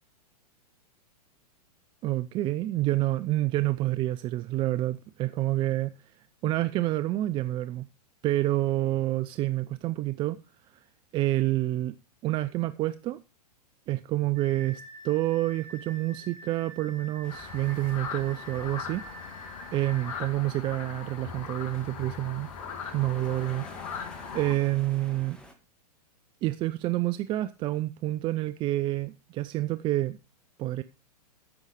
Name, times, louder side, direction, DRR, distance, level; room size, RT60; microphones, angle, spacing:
voice 1, 2.0-5.9 6.2-7.9 8.2-10.4 11.1-11.9 12.2-13.2 13.9-19.0 19.7-22.5 22.9-24.0 24.3-25.4 26.4-30.2 30.6-30.8, right 16 dB, 25° right, 0.4 m, -28 dB
sound 1, 14.4-20.2, right 1 dB, 55° right, 4.7 m, -46 dB
sound 2, 17.2-25.5, equal, 5° left, 2.0 m, -52 dB
sound 3, 17.3-24.6, left 6 dB, 55° left, 1.6 m, -40 dB
14.5 x 6.3 x 5.0 m
figure-of-eight pair, 100°, 21 cm